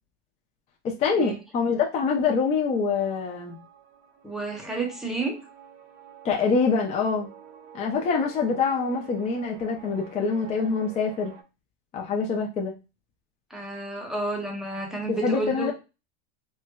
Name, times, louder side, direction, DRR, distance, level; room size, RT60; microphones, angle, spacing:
voice 1, 0.8-3.6 6.2-7.3 7.7-11.3 11.9-12.7 15.1-15.7, left 5 dB, 20° left, 0.4 m, -25 dB
sound 1, 2.5-11.4, right 9 dB, 75° right, 0.9 m, -49 dB
voice 2, 4.2-5.4 13.5-15.7, right 2 dB, ahead, 0.8 m, -31 dB
4.3 x 2.1 x 2.2 m
supercardioid pair, 135°, 33 cm